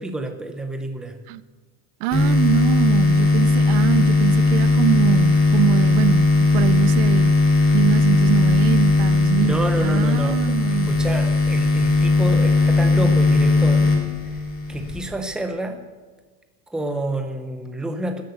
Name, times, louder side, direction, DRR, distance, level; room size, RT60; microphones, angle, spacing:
voice 1, 0.0-1.2 9.4-10.5 10.8-13.9 14.3-14.4 14.7-15.8 16.7-18.2, right 1 dB, ahead, 5 dB, 0.7 m, -28 dB
voice 2, 2.0-7.3 7.7-10.9, right 14 dB, 90° right, 16 dB, 0.9 m, -23 dB
sound 1, 2.1-15.1, left 3 dB, 30° left, 2.5 m, -18 dB
14.0 x 10.5 x 8.1 m, 1.4 s
cardioid pair, 180°, 44 cm